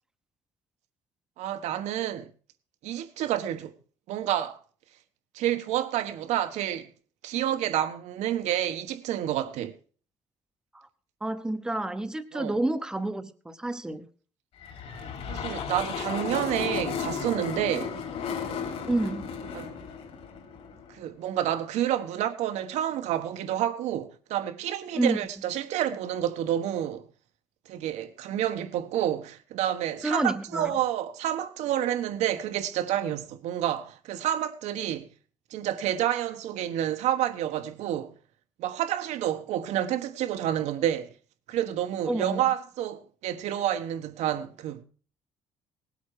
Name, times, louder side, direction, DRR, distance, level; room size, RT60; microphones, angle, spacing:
voice 1, 1.4-2.3 2.8-3.8 4.1-4.6 5.3-6.9 7.2-9.8 12.3-12.6 15.3-17.9 19.5-19.7 20.9-27.1 27.7-35.1 35.5-38.1 38.6-41.1 41.5-44.8, right 11 dB, 75° right, 1.3 m, -29 dB
voice 2, 11.2-14.1 18.9-19.3 25.0-25.2 30.0-30.7 42.1-42.4, right 2 dB, 5° right, 0.8 m, -29 dB
sound 1, 14.6-21.0, left 6 dB, 60° left, 3.5 m, -34 dB
18.5 x 8.2 x 4.8 m
cardioid pair, 165°, 12 cm